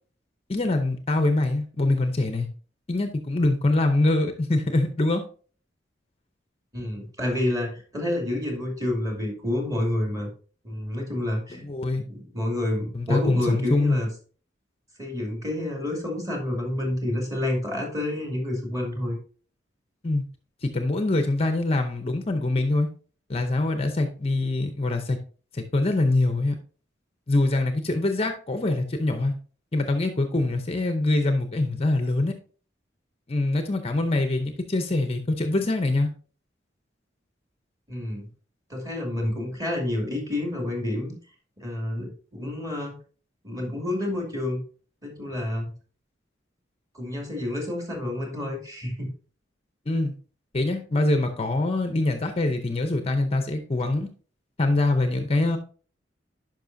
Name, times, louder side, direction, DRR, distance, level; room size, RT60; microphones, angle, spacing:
voice 1, 0.5-2.5 2.9-5.2 11.5-12.0 12.9-14.0 20.0-20.2 20.6-22.9 23.3-25.2 25.5-26.6 27.3-29.3 29.7-32.3 33.3-36.1 49.9-50.1 50.5-54.1 54.6-55.6, left 2 dB, 35° left, 7 dB, 0.7 m, -24 dB
voice 2, 6.7-10.3 10.6-11.6 12.0-14.1 15.0-19.2 37.9-38.3 38.7-41.1 41.6-43.0 43.4-44.6 45.0-45.7 46.9-49.1, left 1 dB, 20° right, 1 dB, 2.4 m, -29 dB
10.5 x 5.3 x 2.6 m, 0.41 s
head